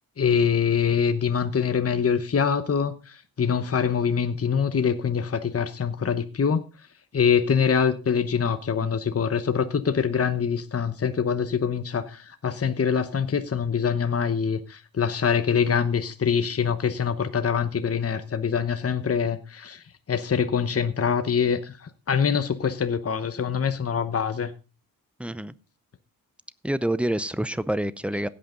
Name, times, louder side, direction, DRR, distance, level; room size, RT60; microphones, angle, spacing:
voice 1, 0.2-6.6 7.1-24.5, left 7 dB, 45° left, 9 dB, 1.0 m, -24 dB
voice 2, 25.2-25.5 26.6-28.3, right 1 dB, 5° right, 16 dB, 0.6 m, -27 dB
16.0 x 8.7 x 3.8 m, 0.32 s
wide cardioid pair, 105°, 35 cm